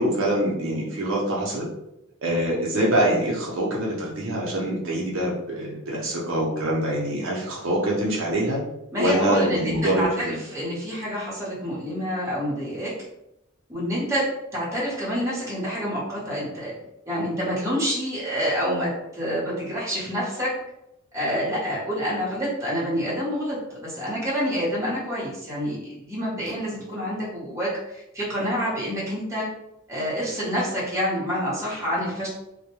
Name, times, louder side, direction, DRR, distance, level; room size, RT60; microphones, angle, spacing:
voice 1, 0.0-1.7 2.2-8.6 9.0-10.3, right 1 dB, 65° right, -4 dB, 0.6 m, -24 dB
voice 2, 8.9-12.9 13.7-14.3 14.5-16.7 17.1-20.5 21.1-29.5 29.9-32.3, equal, 15° right, -7 dB, 0.9 m, -27 dB
2.1 x 2.1 x 2.9 m, 0.84 s
head